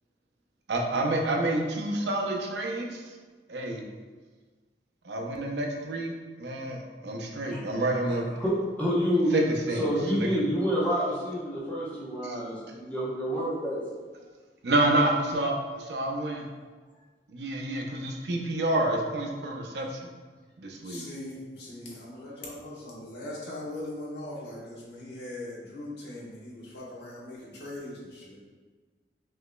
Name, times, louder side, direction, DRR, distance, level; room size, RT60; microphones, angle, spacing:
voice 1, 0.7-3.1 3.5-3.8 5.0-6.1 6.4-8.2 9.3-9.9 10.2-10.4 12.2-12.4 14.6-16.4 17.3-20.0 20.6-21.0, right 1 dB, 75° right, 1 dB, 0.6 m, -28 dB
voice 2, 8.4-9.3 9.8-13.8, equal, 10° left, -8 dB, 0.8 m, -28 dB
voice 3, 20.8-28.4, left 1 dB, 75° left, -5 dB, 1.1 m, -40 dB
5.5 x 2.9 x 2.2 m, 1.4 s
head